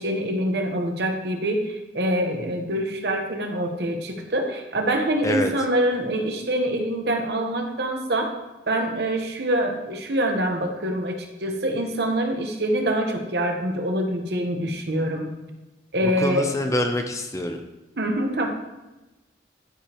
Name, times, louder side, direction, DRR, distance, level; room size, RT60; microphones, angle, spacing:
voice 1, 0.0-8.3 8.7-15.3 15.9-16.4 18.0-18.5, right 1 dB, 60° right, 3 dB, 1.0 m, -25 dB
voice 2, 16.0-17.6, left 1 dB, 15° left, 5 dB, 0.5 m, -25 dB
13.0 x 5.0 x 3.0 m, 1.0 s
head